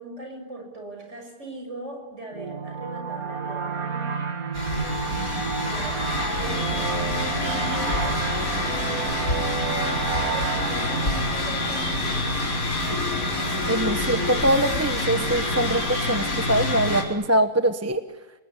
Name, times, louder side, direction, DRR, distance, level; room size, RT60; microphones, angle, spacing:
voice 1, 0.0-4.3 5.6-9.4 9.7-12.5, right 1 dB, 50° right, 3 dB, 7.0 m, -40 dB
sound 1, 2.3-12.7, right 5 dB, 70° right, 2.4 m, -31 dB
sound 2, 4.5-17.0, left 1 dB, 65° left, 5.2 m, -27 dB
voice 2, 13.7-18.0, right 1 dB, 10° right, 8 dB, 1.1 m, -23 dB
29.5 x 20.5 x 9.8 m, 1.2 s
omnidirectional pair, 1.6 m